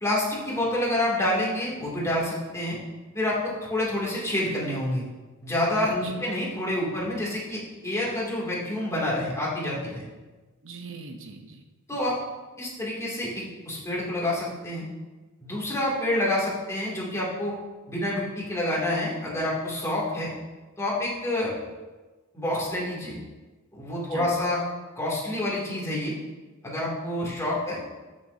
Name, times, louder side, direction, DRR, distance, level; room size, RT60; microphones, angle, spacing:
voice 1, 0.0-2.8 3.1-5.0 5.4-10.0 11.9-12.2 12.6-14.9 15.4-17.5 17.9-20.3 20.8-21.5 22.3-23.2 23.7-24.6 25.0-26.1 26.6-28.0, left 1 dB, 15° left, -5 dB, 2.6 m, -28 dB
voice 2, 5.8-6.3 10.6-11.6 12.1-12.2 24.1-24.3 27.2-27.6, right 3 dB, 65° right, 4 dB, 0.8 m, -42 dB
13.5 x 6.5 x 2.7 m, 1.3 s
head